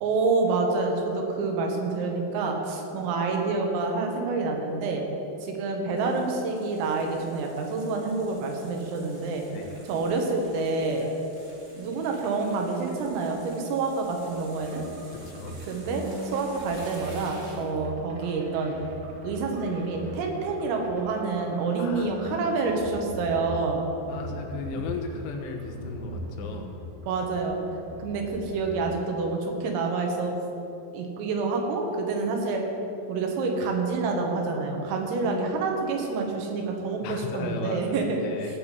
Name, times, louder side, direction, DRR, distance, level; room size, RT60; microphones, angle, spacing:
voice 1, 0.0-5.0 5.4-9.4 9.9-11.1 11.8-14.8 15.7-18.8 19.2-23.9 27.1-27.6 28.0-30.3 30.9-32.6 33.1-38.2, right 3 dB, 85° right, 2 dB, 4.2 m, -28 dB
sound 1, 6.0-17.8, right 1 dB, 25° right, 2.2 m, -51 dB
sound 2, 14.6-28.9, right 1 dB, 60° right, 3.2 m, -41 dB
voice 2, 15.1-15.6 21.8-22.7 24.1-26.8 37.0-38.6, left 4 dB, 90° left, 3 dB, 4.0 m, -36 dB
16.5 x 5.8 x 8.2 m, 3.0 s
omnidirectional pair, 5.9 m